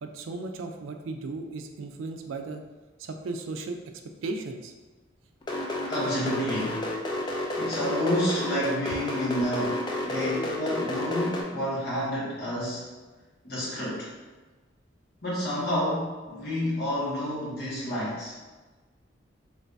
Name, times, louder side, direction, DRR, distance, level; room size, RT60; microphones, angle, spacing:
voice 1, 0.0-2.6 3.0-3.8 4.2-4.7, right 3 dB, 85° right, 5 dB, 0.4 m, -35 dB
sound 1, 5.4-11.4, left 1 dB, 25° left, 0.4 m, -30 dB
voice 2, 5.9-6.9 7.6-12.9 13.4-14.1 15.2-18.3, equal, 55° left, -7 dB, 1.3 m, -29 dB
3.3 x 3.1 x 2.6 m, 1.2 s
head